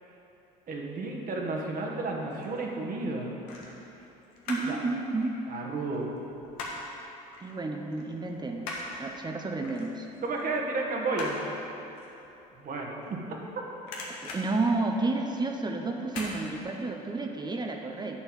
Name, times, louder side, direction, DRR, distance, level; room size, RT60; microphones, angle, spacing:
voice 1, 0.7-3.3 4.7-4.8 5.5-6.1 10.2-11.4 12.5-13.2, right 3 dB, 45° right, 0 dB, 1.5 m, -32 dB
sound 1, 2.3-2.6 3.4-4.8 5.1-7.0 7.3-7.5 7.9-13.5 13.8-15.4 16.1-16.4 16.8-16.9, left 2 dB, 75° left, 1.5 m, -41 dB
voice 2, 4.5-5.5 7.4-10.1 14.2-18.2, right 3 dB, 20° right, 3 dB, 0.8 m, -31 dB
8.4 x 4.5 x 7.3 m, 3.0 s
hypercardioid pair, 70°, 20 cm